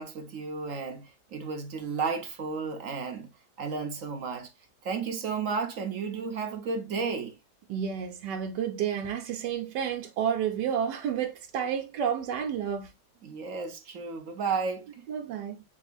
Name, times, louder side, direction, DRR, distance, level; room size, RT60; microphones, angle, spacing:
voice 1, 0.0-3.3 3.6-4.5 4.8-7.4 13.2-15.1, right 5 dB, 55° right, 1.1 m, -33 dB
voice 2, 7.7-12.9 15.1-15.6, right 8 dB, 90° right, 1.4 m, -30 dB
7.6 x 2.9 x 2.4 m
omnidirectional pair, 1.8 m